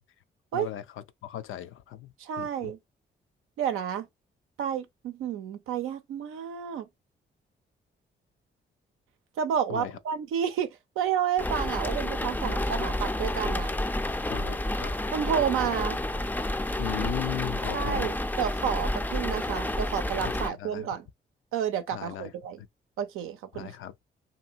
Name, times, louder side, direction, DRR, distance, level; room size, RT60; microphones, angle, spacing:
voice 1, 0.5-0.8 1.2-2.1 2.4-2.7 9.7-9.9 14.3-14.9 16.8-18.1 20.2-20.9 21.9-22.3 23.5-23.9, left 13 dB, 75° left, 0.4 m, -37 dB
voice 2, 2.2-2.8 3.6-4.1 4.6-6.9 9.4-13.7 15.1-16.0 17.7-21.1 21.5-22.6 23.0-23.7, right 8 dB, 90° right, 0.5 m, -30 dB
sound 1, 11.4-20.5, left 1 dB, 10° left, 0.3 m, -30 dB
2.7 x 2.6 x 2.7 m
supercardioid pair, 50°, 21 cm